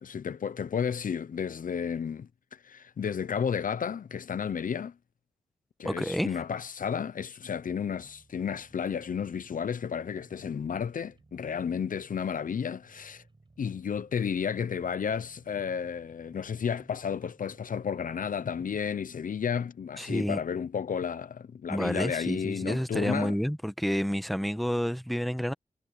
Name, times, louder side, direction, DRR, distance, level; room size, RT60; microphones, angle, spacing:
voice 1, 0.0-4.9 5.8-13.2 13.6-23.3, left 7 dB, 70° left, 0.6 m, -32 dB
voice 2, 5.8-6.4 20.0-20.4 21.7-25.5, equal, ahead, 1.2 m, -29 dB
sound 1, 7.7-18.9, right 3 dB, 35° right, 6.8 m, -60 dB
wide cardioid pair, 75°, 14 cm